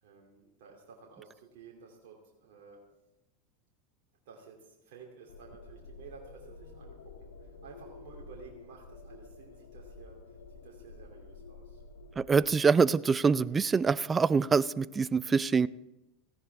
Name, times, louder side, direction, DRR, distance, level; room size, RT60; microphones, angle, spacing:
voice 1, 0.0-2.8 4.2-11.8, right 5 dB, 65° right, -1 dB, 2.9 m, -53 dB
sound 1, 5.3-12.5, left 3 dB, 80° left, 1.5 m, -50 dB
voice 2, 12.2-15.7, right 5 dB, 20° right, 20 dB, 0.5 m, -25 dB
17.5 x 16.0 x 3.6 m, 0.96 s
hypercardioid pair, 90°, 0 cm